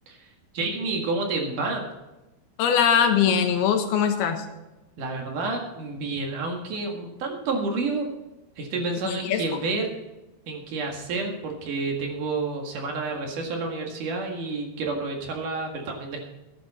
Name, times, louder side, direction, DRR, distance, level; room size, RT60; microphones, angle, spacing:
voice 1, 0.5-1.8 5.0-8.1 8.6-9.9 10.5-16.2, right 3 dB, 60° right, 1 dB, 3.2 m, -29 dB
voice 2, 2.6-4.4 9.0-9.4, left 8 dB, 85° left, 6 dB, 3.2 m, -21 dB
14.5 x 10.5 x 4.2 m, 1.0 s
omnidirectional pair, 4.4 m